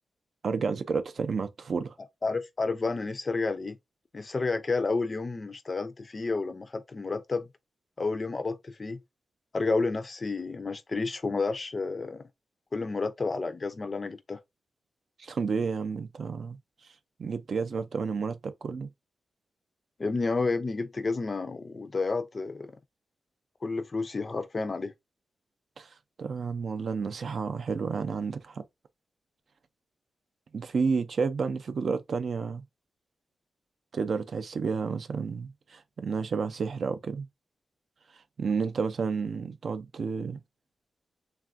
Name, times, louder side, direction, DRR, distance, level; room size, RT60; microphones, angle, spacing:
voice 1, 0.4-1.9 15.2-16.6 17.2-18.9 25.8-25.9 26.2-28.6 30.5-32.6 33.9-37.3 38.4-40.4, right 5 dB, 60° right, 0.4 m, -31 dB
voice 2, 2.2-3.8 4.1-7.5 8.0-9.0 9.5-12.3 12.7-14.4 20.0-22.8 23.6-24.9, left 3 dB, 35° left, 0.4 m, -30 dB
3.3 x 2.3 x 2.4 m
wide cardioid pair, 105°, 0 cm